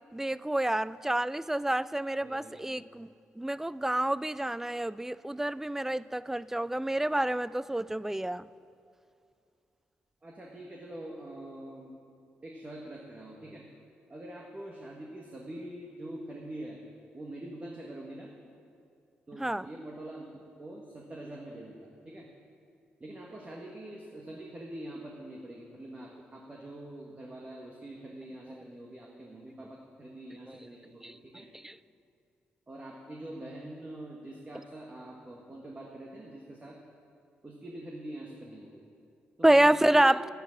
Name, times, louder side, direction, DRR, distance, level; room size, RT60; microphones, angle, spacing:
voice 1, 0.1-3.1 3.4-8.5 19.4-19.7 31.0-31.1 31.6-31.7 39.4-40.2, right 1 dB, 10° right, 18 dB, 0.3 m, -27 dB
voice 2, 2.2-2.8 10.2-11.9 12.4-13.6 14.1-16.8 17.1-18.3 19.3-20.3 20.6-22.3 23.0-31.5 32.7-36.8 37.4-38.8 39.4-40.2, right 1 dB, 30° right, -2 dB, 1.8 m, -44 dB
10.0 x 9.0 x 7.4 m, 2.4 s
hypercardioid pair, 45°, 5 cm